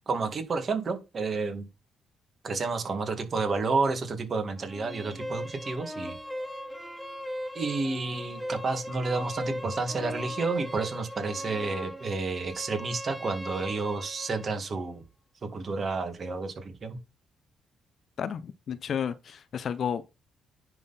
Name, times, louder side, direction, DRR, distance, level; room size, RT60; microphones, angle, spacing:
voice 1, 0.1-1.7 2.4-6.2 7.5-15.0 15.4-17.0, right 4 dB, 45° right, 2.1 m, -30 dB
sound 1, 4.6-14.5, equal, 5° left, 0.9 m, -38 dB
voice 2, 18.2-20.0, left 8 dB, 55° left, 0.7 m, -32 dB
10.0 x 3.9 x 4.2 m
cardioid pair, 90°, 0 cm